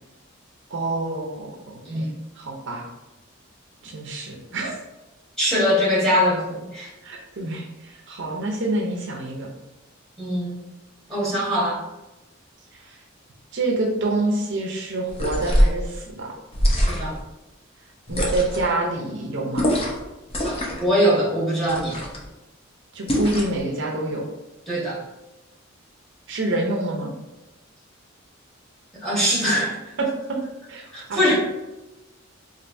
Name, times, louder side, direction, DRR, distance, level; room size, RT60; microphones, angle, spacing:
voice 1, 0.7-2.1 2.4-2.9 3.8-4.8 7.0-9.5 12.7-12.9 13.5-16.3 18.1-19.7 22.9-24.3 26.3-27.1 30.0-30.4 30.7-31.3, right 2 dB, 60° right, 0 dB, 0.6 m, -27 dB
voice 2, 5.4-6.9 10.2-10.5 11.1-11.8 16.9-17.1 20.4-22.0 24.7-25.0 29.0-29.8 30.9-31.3, equal, 5° left, -7 dB, 1.3 m, -22 dB
sound 1, 15.1-15.8 16.5-17.2 18.1-18.7 19.5-20.0 20.3-20.9 21.7-22.2 23.1-23.6, equal, 30° left, 0.6 m, -23 dB
4.4 x 2.5 x 2.6 m, 1.0 s
head